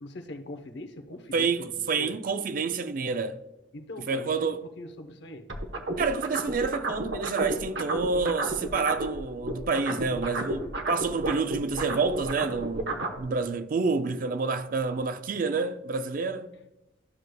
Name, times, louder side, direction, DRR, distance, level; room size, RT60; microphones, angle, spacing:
voice 1, 0.0-2.2 3.7-5.5, left 1 dB, 60° left, 0.8 m, -42 dB
voice 2, 1.3-3.4 4.1-4.6 6.0-16.5, right 4 dB, 45° right, 0.4 m, -28 dB
sound 1, 5.5-9.2 9.4-13.2, right 2 dB, 60° right, 0.9 m, -31 dB
12.5 x 6.5 x 2.2 m
head